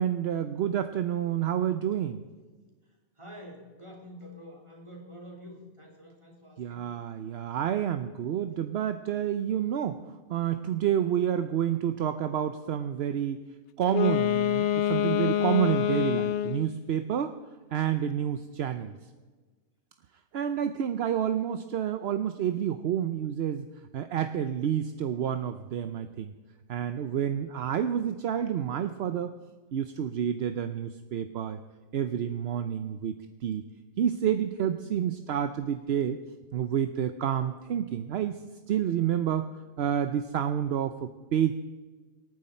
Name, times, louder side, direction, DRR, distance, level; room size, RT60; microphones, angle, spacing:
voice 1, 0.0-2.2 6.6-10.0 10.3-13.4 13.8-17.3 17.7-19.0 20.3-23.7 23.9-26.3 26.7-29.3 29.7-31.6 31.9-33.2 33.4-33.6 34.0-36.2 36.5-38.4 38.7-39.4 39.8-41.5, right 9 dB, 60° right, 9 dB, 0.7 m, -29 dB
voice 2, 3.2-6.9 18.2-18.3, equal, 20° right, -1 dB, 3.0 m, -47 dB
Wind instrument woodwind instrument, 13.8-16.8, left 11 dB, 65° left, 0.6 m, -26 dB
25.0 x 9.5 x 4.4 m, 1.3 s
omnidirectional pair, 1.5 m